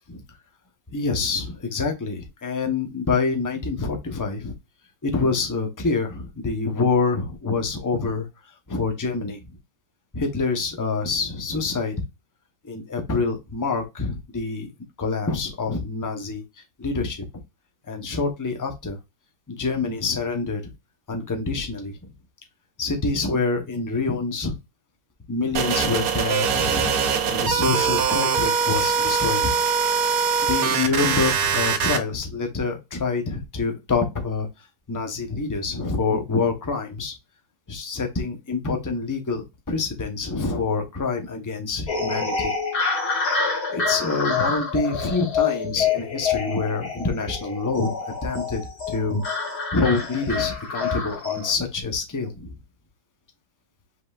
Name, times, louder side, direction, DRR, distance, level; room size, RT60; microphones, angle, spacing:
voice 1, 0.9-4.5 5.0-8.3 8.7-9.4 10.1-11.9 12.6-14.7 15.0-16.4 16.8-17.2 17.9-19.0 19.5-20.6 21.1-22.1 22.8-24.6 25.3-26.9 27.3-29.5 30.5-34.5 34.9-37.1 37.7-42.5 43.7-48.6 48.9-52.5, left 4 dB, 20° left, 4 dB, 0.5 m, -26 dB
sound 1, 25.5-32.0, right 6 dB, 65° right, 1.1 m, -22 dB
sound 2, 41.9-51.5, left 5 dB, 65° left, 2.4 m, -27 dB
5.4 x 3.8 x 2.4 m, 0.23 s
omnidirectional pair, 1.8 m